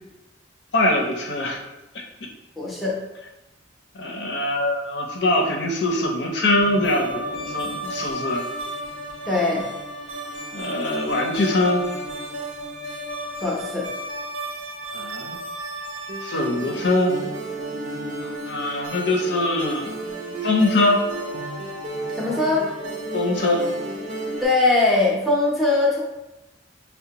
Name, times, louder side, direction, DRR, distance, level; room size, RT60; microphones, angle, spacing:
voice 1, 0.7-1.6 4.0-8.5 10.5-11.8 14.9-15.4 16.2-17.2 18.2-19.9 20.4-21.0 23.1-23.7, left 2 dB, 60° left, 1 dB, 0.6 m, -22 dB
voice 2, 2.6-3.0 9.3-9.7 13.4-13.9 22.1-22.7 24.4-26.0, left 2 dB, ahead, -5 dB, 0.7 m, -21 dB
sound 1, 6.5-24.4, right 1 dB, 35° right, 0.6 m, -33 dB
5.4 x 2.2 x 2.8 m, 0.99 s
head